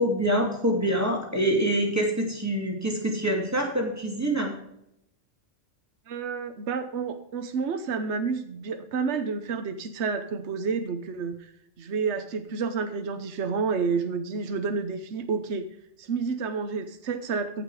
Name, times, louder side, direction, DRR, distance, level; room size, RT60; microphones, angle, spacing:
voice 1, 0.0-4.5, right 1 dB, 15° right, 0 dB, 2.6 m, -25 dB
voice 2, 6.1-11.5 11.8-15.6 16.0-17.6, right 5 dB, 70° right, 8 dB, 1.2 m, -30 dB
15.0 x 5.8 x 4.8 m, 0.78 s
omnidirectional pair, 1.2 m